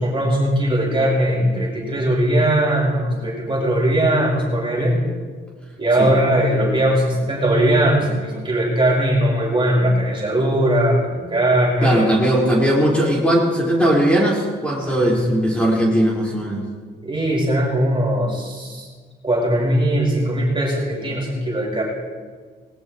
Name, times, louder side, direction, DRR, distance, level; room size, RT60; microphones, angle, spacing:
voice 1, 0.0-5.0 5.8-12.1 15.0-15.2 17.0-18.9 19.2-21.8, right 1 dB, 25° right, -3 dB, 5.3 m, -19 dB
voice 2, 11.8-16.6, right 1 dB, 5° left, -5 dB, 5.1 m, -18 dB
19.5 x 19.0 x 3.2 m, 1.5 s
cardioid pair, 90°, 20 cm